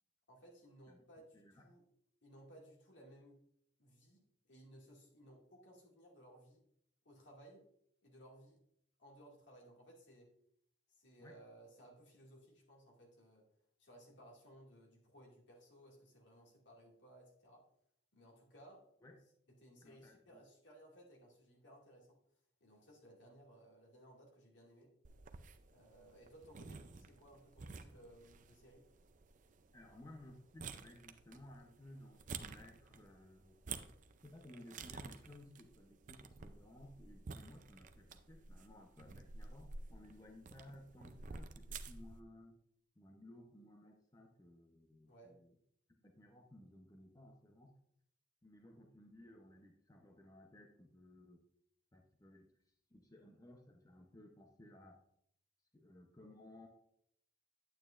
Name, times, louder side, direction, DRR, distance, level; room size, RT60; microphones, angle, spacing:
voice 1, 0.3-1.8 2.2-3.4 3.8-6.6 7.0-7.7 8.0-8.6 9.0-10.3 10.9-13.5 13.8-17.6 18.1-18.9 19.5-22.2 22.6-24.9 25.7-28.9 45.0-45.4, right 1 dB, 70° left, -1 dB, 2.2 m, -60 dB
voice 2, 1.3-1.6 11.2-11.4 19.0-19.2 19.8-20.4 29.7-33.6 34.2-42.6 43.0-45.5 46.0-47.7 48.4-51.4 51.9-52.5 52.9-55.0 55.7-56.7, left 1 dB, 20° left, 2 dB, 0.7 m, -58 dB
sound 1, 25.0-42.2, right 4 dB, 45° right, 0.5 m, -52 dB
9.2 x 8.7 x 2.5 m, 0.70 s
head